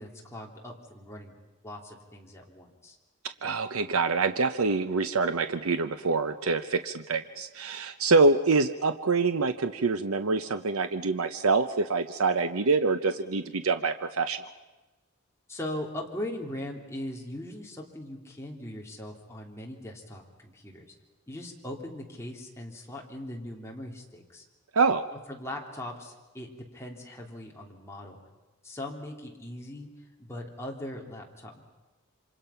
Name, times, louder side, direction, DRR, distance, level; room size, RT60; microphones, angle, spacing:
voice 1, 0.0-1.3 1.6-3.0 15.5-20.9 21.3-24.4 25.1-28.2 28.6-29.9 30.2-31.6, left 1 dB, 15° left, -1 dB, 3.0 m, -40 dB
voice 2, 3.4-14.4 24.7-25.0, right 4 dB, 85° right, 9 dB, 0.8 m, -25 dB
27.5 x 25.5 x 5.8 m, 1.2 s
head